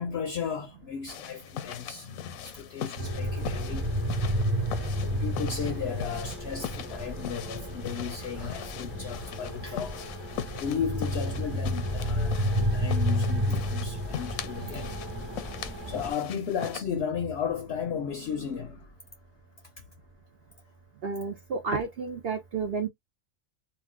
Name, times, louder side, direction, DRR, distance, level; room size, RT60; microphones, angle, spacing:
voice 1, 0.0-3.9 4.7-10.3 10.5-15.0 15.3-18.9 19.8-19.9, left 7 dB, 65° left, 0.7 m, -35 dB
sound 1, 1.1-16.8, left 9 dB, 85° left, 1.0 m, -40 dB
sound 2, 3.0-16.1, equal, 20° right, 1.2 m, -31 dB
voice 2, 21.0-22.9, right 4 dB, 55° right, 0.7 m, -31 dB
2.5 x 2.3 x 3.5 m
omnidirectional pair, 1.4 m